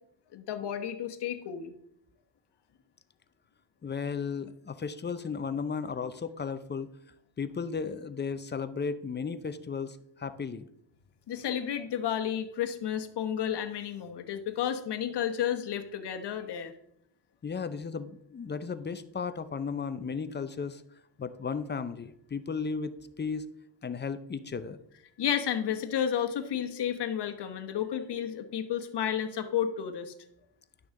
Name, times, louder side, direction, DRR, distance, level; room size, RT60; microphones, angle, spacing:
voice 1, 0.3-1.7 11.3-16.7 25.2-30.1, left 9 dB, 55° left, 7 dB, 1.2 m, -32 dB
voice 2, 3.8-6.9 7.4-10.7 17.4-20.8 21.2-23.5 23.8-24.8, left 5 dB, 25° left, 12 dB, 0.5 m, -35 dB
11.0 x 6.2 x 3.8 m, 0.72 s
cardioid pair, 95°, 47 cm